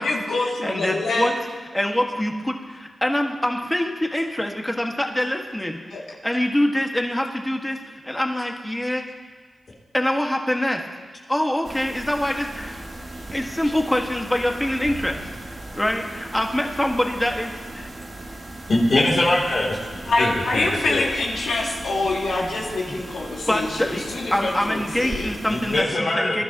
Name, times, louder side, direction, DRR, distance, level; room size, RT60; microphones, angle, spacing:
voice 1, 0.0-1.3 5.9-6.0 20.1-25.3, left 2 dB, 85° left, -3 dB, 2.5 m, -25 dB
voice 2, 0.6-1.3 1.7-5.8 6.2-9.0 9.9-10.8 11.3-12.9 13.3-15.2 15.8-17.9 22.8-22.9 23.5-26.4, left 1 dB, 10° left, 2 dB, 1.8 m, -24 dB
sound 1, 11.6-25.8, right 1 dB, 60° right, 3.1 m, -37 dB
voice 3, 18.7-19.8 20.2-21.1 25.5-26.4, left 1 dB, 65° left, -5 dB, 3.0 m, -22 dB
21.0 x 11.5 x 3.0 m, 1.5 s
cardioid pair, 55°, 0 cm